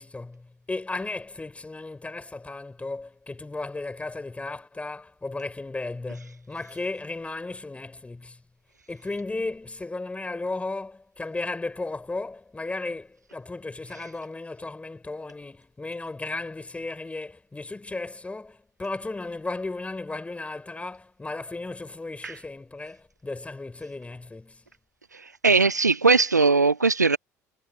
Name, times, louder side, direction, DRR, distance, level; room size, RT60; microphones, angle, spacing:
voice 1, 0.0-8.4 8.9-24.6, left 3 dB, 15° left, 4.3 m, -35 dB
voice 2, 25.4-27.2, right 4 dB, 90° right, 0.7 m, -19 dB
figure-of-eight pair, 60°, 9 cm